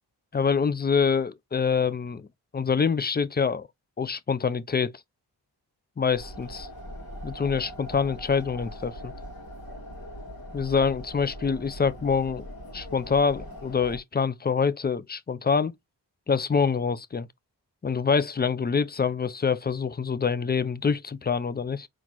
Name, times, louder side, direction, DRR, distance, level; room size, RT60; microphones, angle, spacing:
voice 1, 0.3-2.3 2.5-3.7 4.0-4.9 6.0-6.7 7.2-9.1 10.5-12.5 12.7-15.7 16.3-17.3 17.8-21.9, left 5 dB, 25° left, 0.4 m, -25 dB
sound 1, 6.1-14.0, equal, 55° left, 1.8 m, -41 dB
4.1 x 3.0 x 2.9 m
cardioid pair, 60°, 43 cm